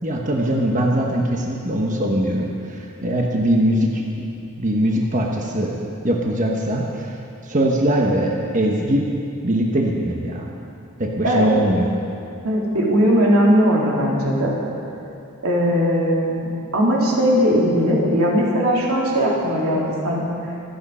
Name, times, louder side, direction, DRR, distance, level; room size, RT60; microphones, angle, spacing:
voice 1, 0.0-4.3 4.6-7.2 7.4-9.1 9.4-10.5 11.0-11.9, right 1 dB, 35° right, -1 dB, 1.2 m, -21 dB
voice 2, 12.4-14.5 15.4-20.2, equal, 90° right, -4 dB, 3.4 m, -19 dB
26.0 x 8.6 x 5.6 m, 2.7 s
head